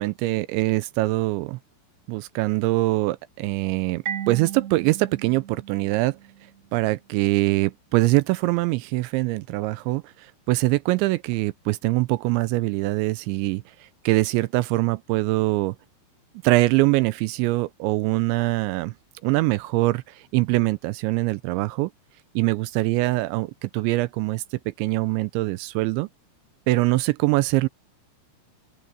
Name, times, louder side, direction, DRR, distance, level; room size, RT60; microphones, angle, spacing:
voice 1, 0.0-1.6 2.1-6.2 6.7-13.6 14.1-15.8 16.4-18.9 19.2-21.9 22.4-26.1 26.7-27.7, right 21 dB, 85° right, 2.7 m, -23 dB
Marimba xylophone, 4.1-6.7, right 9 dB, 50° right, 1.9 m, -36 dB
open air
omnidirectional pair, 5.6 m